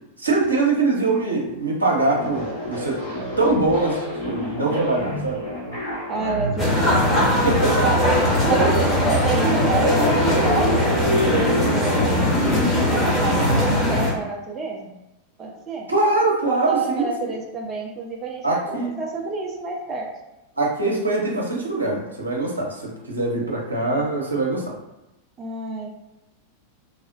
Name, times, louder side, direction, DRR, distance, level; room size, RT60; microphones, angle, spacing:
voice 1, 0.2-3.0 3.4-5.4 7.4-7.8 15.9-17.1 18.4-18.9 20.6-24.6, right 2 dB, 80° right, -3 dB, 0.7 m, -22 dB
sound 1, 2.1-13.7, equal, 80° left, 1.4 m, -27 dB
voice 2, 6.1-7.6 7.8-8.0 8.5-12.1 12.7-14.9 15.4-15.9 16.5-20.1 25.4-25.9, right 4 dB, 25° right, -1 dB, 0.5 m, -28 dB
sound 2, 6.6-14.1, left 1 dB, 15° left, 1.0 m, -20 dB
3.2 x 2.1 x 2.5 m, 0.95 s
figure-of-eight pair, 90°, 0 cm